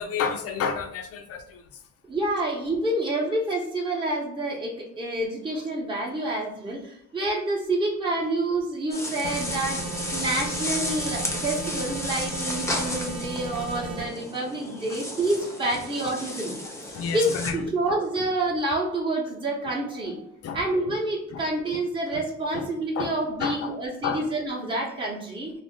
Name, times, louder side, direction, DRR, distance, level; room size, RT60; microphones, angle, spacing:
voice 1, 0.0-1.6 16.9-17.6 20.4-20.6 21.3-21.4 22.5-22.6 23.0-23.1 23.4-23.7 24.0-24.2, left 6 dB, 55° left, 5 dB, 0.5 m, -30 dB
voice 2, 2.1-9.8 10.1-16.6 17.1-20.2 20.5-25.5, right 2 dB, 15° right, -3 dB, 0.8 m, -28 dB
sound 1, 8.9-17.5, left 1 dB, 10° left, 0.7 m, -33 dB
sound 2, 9.2-14.1, right 4 dB, 85° right, 0.7 m, -35 dB
2.4 x 2.1 x 3.7 m, 0.75 s
cardioid pair, 90°, 30 cm